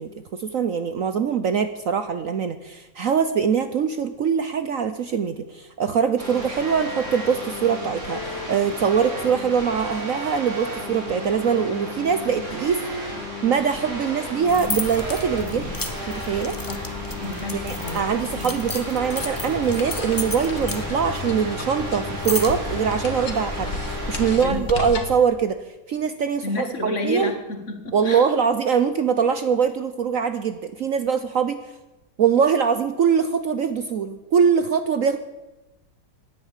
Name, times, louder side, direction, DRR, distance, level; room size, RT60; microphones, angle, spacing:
voice 1, 0.0-12.8 13.4-15.8 16.1-16.6 17.6-25.6 25.9-26.7 27.0-27.3 27.9-31.7 32.2-35.2, right 7 dB, 60° right, 10 dB, 1.0 m, -23 dB
sound 1, 6.2-24.4, equal, 40° right, 5.6 m, -33 dB
sound 2, 14.5-24.7, left 2 dB, 15° left, 0.9 m, -33 dB
voice 2, 16.6-18.5 24.4-24.9 26.4-28.3, left 2 dB, 45° left, 6 dB, 1.9 m, -31 dB
sound 3, 19.1-25.3, left 4 dB, 85° left, 2.4 m, -36 dB
17.0 x 10.5 x 7.4 m, 1.1 s
omnidirectional pair, 1.9 m